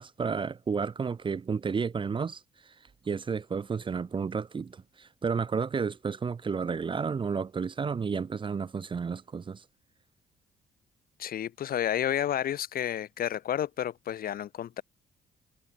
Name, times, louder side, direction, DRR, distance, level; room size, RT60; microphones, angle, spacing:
voice 1, 0.0-2.7 3.0-9.6, right 5 dB, 30° right, 0.7 m, -32 dB
voice 2, 11.2-14.8, left 10 dB, 65° left, 1.5 m, -31 dB
cardioid pair, 90°, 16 cm